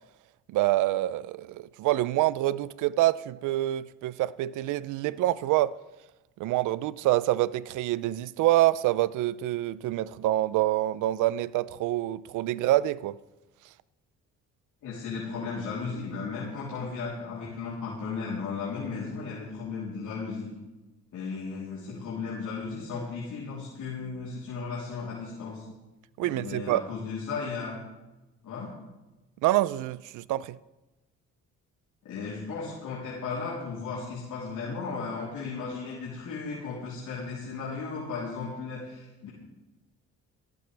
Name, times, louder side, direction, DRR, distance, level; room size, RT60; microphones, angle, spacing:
voice 1, 0.5-5.8 6.4-13.2 26.2-26.8 29.4-30.6, right 15 dB, 90° right, 0.5 m, -26 dB
voice 2, 14.8-20.5 21.1-25.7 26.2-27.8 28.4-28.7 32.0-39.3, left 4 dB, 75° left, 3.6 m, -35 dB
17.0 x 15.5 x 3.4 m
cardioid pair, 90°, 30 cm